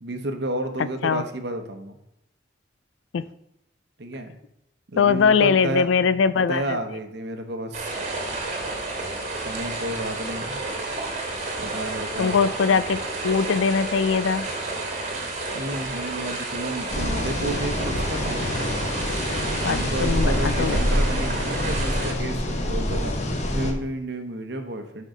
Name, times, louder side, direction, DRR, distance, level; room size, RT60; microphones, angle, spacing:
voice 1, 0.0-2.0 4.0-4.4 4.9-5.9 6.3-8.0 9.4-10.6 11.6-12.4 15.5-18.4 19.7-23.1 23.5-25.1, right 1 dB, 60° right, 6 dB, 0.9 m, -31 dB
voice 2, 5.0-6.6 12.2-13.0 13.2-14.5 19.6-20.8, left 6 dB, 85° left, 16 dB, 0.4 m, -21 dB
sound 1, 7.7-22.1, right 2 dB, 40° right, 1.5 m, -31 dB
sound 2, 16.9-23.7, left 1 dB, 35° left, 1.0 m, -26 dB
6.4 x 5.5 x 4.9 m, 0.84 s
head